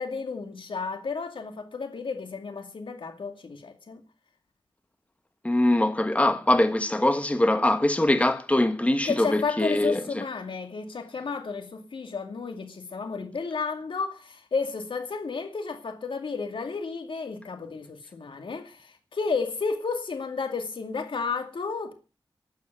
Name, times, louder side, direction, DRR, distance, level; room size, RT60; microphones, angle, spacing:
voice 1, 0.0-4.0 9.0-21.9, left 4 dB, 85° left, 2.4 m, -32 dB
voice 2, 5.4-10.2, left 1 dB, 15° left, 1.3 m, -23 dB
12.0 x 8.7 x 9.3 m
wide cardioid pair, 95°, 8 cm